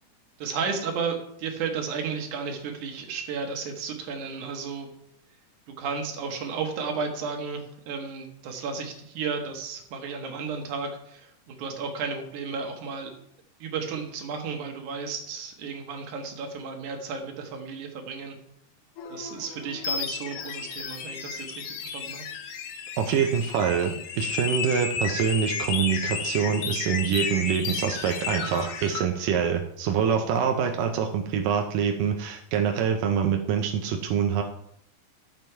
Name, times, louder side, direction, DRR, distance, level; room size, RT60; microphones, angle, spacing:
voice 1, 0.4-4.9 5.7-13.1 13.6-18.4 19.1-22.2, right 5 dB, 70° right, 3 dB, 3.0 m, -33 dB
sound 1, 19.0-29.0, left 6 dB, 75° left, 2.6 m, -33 dB
voice 2, 23.0-34.4, right 7 dB, 90° right, 3 dB, 2.5 m, -25 dB
13.0 x 7.3 x 4.6 m, 0.74 s
omnidirectional pair, 3.7 m